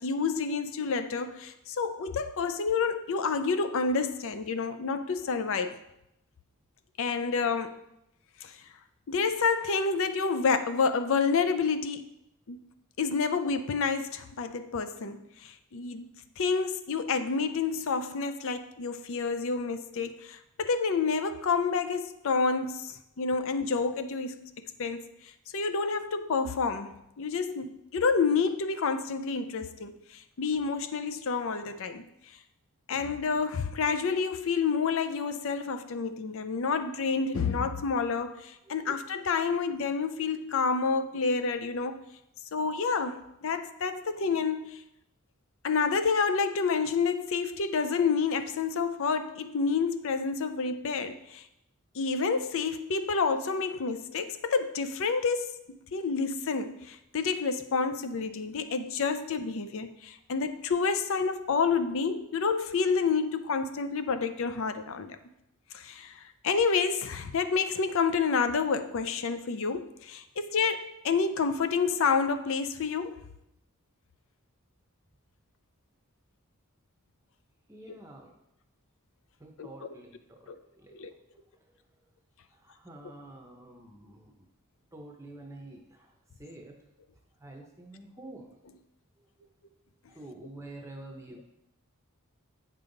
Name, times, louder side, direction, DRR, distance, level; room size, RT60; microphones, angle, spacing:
voice 1, 0.0-5.8 7.0-7.8 8.4-8.6 9.1-12.1 12.5-12.6 13.0-16.1 16.4-32.0 32.9-42.0 42.5-44.8 45.6-51.5 51.9-55.5 55.9-65.2 65.7-73.2 79.6-79.7 80.5-80.6 80.9-81.1, left 5 dB, 60° left, 10 dB, 0.5 m, -29 dB
voice 2, 77.7-78.3 79.4-80.9 82.5-84.5 84.9-86.1 86.4-86.7 87.4-88.5 90.1-91.4, right 2 dB, 15° right, 1 dB, 0.7 m, -48 dB
9.3 x 5.4 x 3.9 m, 0.83 s
head